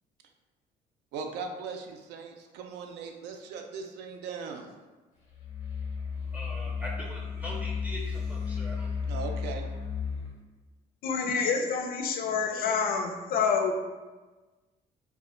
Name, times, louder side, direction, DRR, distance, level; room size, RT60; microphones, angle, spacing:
voice 1, 1.1-4.7 9.1-9.7, right 5 dB, 85° right, 4 dB, 0.4 m, -39 dB
sound 1, 5.3-10.3, left 5 dB, 90° left, 0.8 m, -33 dB
voice 2, 6.3-8.9, equal, 10° right, -3 dB, 0.4 m, -41 dB
voice 3, 11.0-13.7, left 5 dB, 60° left, 3 dB, 0.4 m, -27 dB
2.1 x 2.1 x 3.6 m, 1.2 s
cardioid pair, 110°, 17 cm